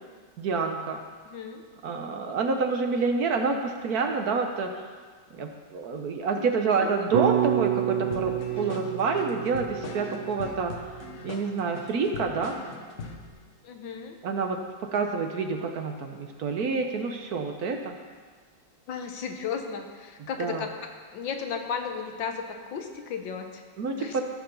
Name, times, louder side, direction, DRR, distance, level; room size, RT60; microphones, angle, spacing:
voice 1, 0.4-1.0 1.8-4.8 5.3-10.7 11.2-12.5 14.2-14.6 14.9-17.9 20.2-20.6 23.8-24.2, right 4 dB, 60° right, 4 dB, 1.2 m, -28 dB
voice 2, 1.3-1.6 6.4-6.5 7.0-7.1 13.6-14.2 18.9-23.6 24.0-24.2, left 6 dB, 80° left, 5 dB, 1.7 m, -35 dB
sound 1, 7.1-11.4, right 12 dB, 90° right, 1.4 m, -29 dB
sound 2, 8.1-13.3, left 4 dB, 50° left, 1.1 m, -41 dB
14.5 x 5.8 x 6.8 m, 1.5 s
omnidirectional pair, 2.1 m